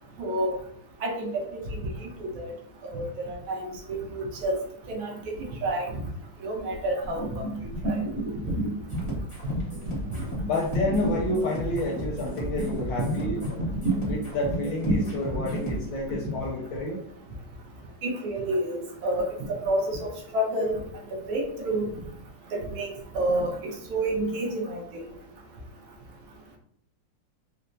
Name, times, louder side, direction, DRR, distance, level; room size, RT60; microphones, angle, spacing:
voice 1, 0.2-0.6 1.0-1.4 1.7-2.5 2.8-4.6 4.9-5.1 5.4-5.9 6.4-8.0 18.0-20.8 21.3-21.9 22.5-25.0, right 1 dB, 75° right, 0 dB, 1.4 m, -29 dB
sound 1, 7.0-9.1 9.4-16.3, right 1 dB, 50° right, 1.2 m, -31 dB
sound 2, 8.9-15.8, left 1 dB, 50° left, 0.3 m, -36 dB
voice 2, 10.4-13.4 14.0-17.0, left 1 dB, 75° left, -1 dB, 1.1 m, -29 dB
4.4 x 2.0 x 2.5 m, 0.67 s
omnidirectional pair, 2.4 m